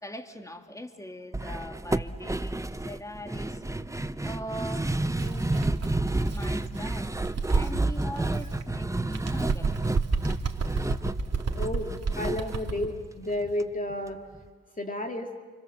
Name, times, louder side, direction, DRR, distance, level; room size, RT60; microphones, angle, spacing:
voice 1, 0.0-3.6 4.2-5.6 6.3-9.7, equal, 10° left, 5 dB, 2.7 m, -41 dB
sound 1, 1.3-13.6 13.9-14.0 14.3-14.5, right 2 dB, 10° right, 0.9 m, -30 dB
Bird, 5.1-8.7 9.1-12.9, right 4 dB, 55° right, 2.6 m, -31 dB
voice 2, 11.5-11.9 12.2-14.2 14.8-15.3, left 1 dB, 25° left, 2 dB, 2.3 m, -31 dB
29.0 x 25.5 x 7.3 m, 1.5 s
supercardioid pair, 55°, 30 cm